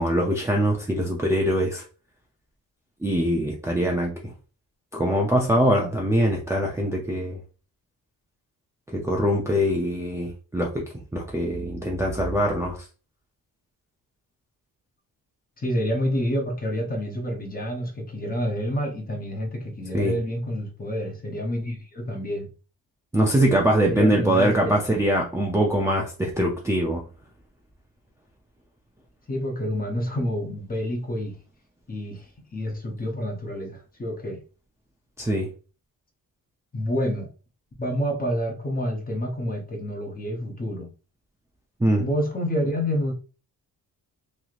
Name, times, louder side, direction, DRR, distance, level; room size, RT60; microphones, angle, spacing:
voice 1, 0.0-1.8 3.0-4.3 4.9-7.4 8.9-10.8 11.1-12.8 19.9-20.1 23.1-27.0 35.2-35.5 41.8-42.1, equal, 10° right, 0.4 m, -23 dB
voice 2, 15.6-22.5 23.9-24.8 29.3-31.4 31.9-34.4 36.7-37.3 37.8-40.9 42.0-43.1, equal, 25° left, 0.7 m, -28 dB
3.1 x 2.7 x 2.4 m
wide cardioid pair, 140°, 38 cm